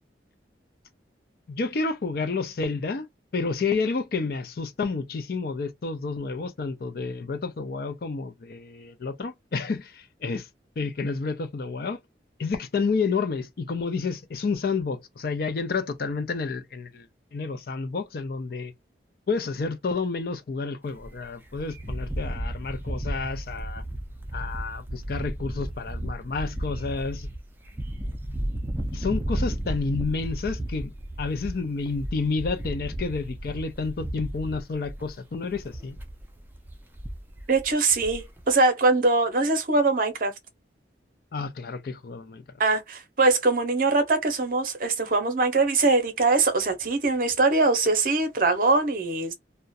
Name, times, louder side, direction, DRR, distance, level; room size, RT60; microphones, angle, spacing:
voice 1, 1.5-3.1 3.3-10.5 10.8-12.0 12.4-17.1 17.3-18.7 19.3-23.8 24.3-27.3 28.9-30.9 31.2-36.0 41.3-42.4, left 4 dB, 55° left, 0.4 m, -30 dB
sound 1, 20.9-38.4, right 1 dB, 10° right, 0.4 m, -34 dB
voice 2, 37.5-40.3 42.6-49.3, right 3 dB, 50° right, 0.6 m, -22 dB
2.3 x 2.1 x 2.5 m
head